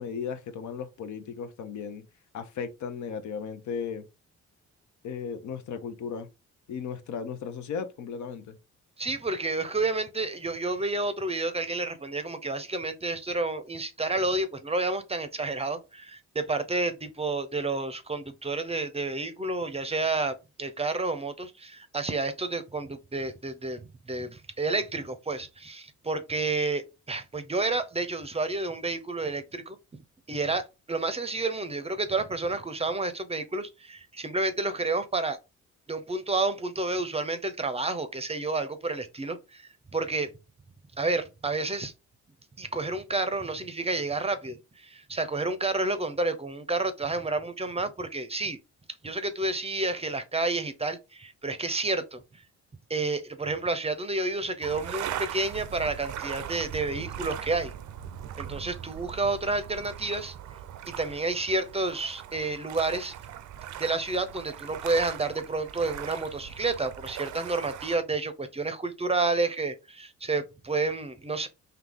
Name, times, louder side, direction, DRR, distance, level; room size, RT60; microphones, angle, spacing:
voice 1, 0.0-2.1 2.3-4.0 5.0-6.3 6.7-8.6, left 6 dB, 70° left, 0.8 m, -36 dB
voice 2, 9.0-29.8 30.3-35.4 35.9-39.6 39.9-40.3 41.0-41.9 42.6-48.6 49.0-52.2 52.9-57.7 58.4-60.4 61.0-63.1 63.8-71.5, right 3 dB, 20° right, 0.6 m, -30 dB
sound 1, 54.6-68.0, right 10 dB, 75° right, 0.6 m, -40 dB
3.9 x 2.7 x 3.5 m
cardioid pair, 95°, 30 cm